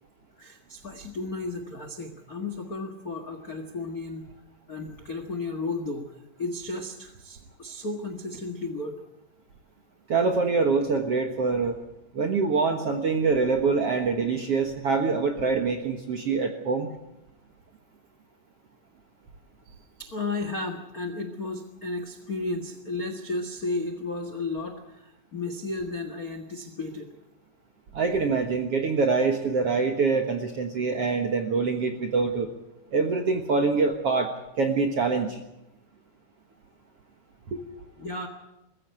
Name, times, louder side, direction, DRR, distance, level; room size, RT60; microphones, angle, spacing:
voice 1, 0.4-4.2 4.7-6.1 6.4-9.0 19.6-27.1 38.0-38.3, left 3 dB, 80° left, 7 dB, 0.8 m, -33 dB
voice 2, 10.1-11.8 12.1-16.9 27.9-32.5 32.9-35.4 37.5-37.6, right 4 dB, 60° right, 4 dB, 1.6 m, -25 dB
21.5 x 14.5 x 9.3 m, 0.92 s
omnidirectional pair, 4.7 m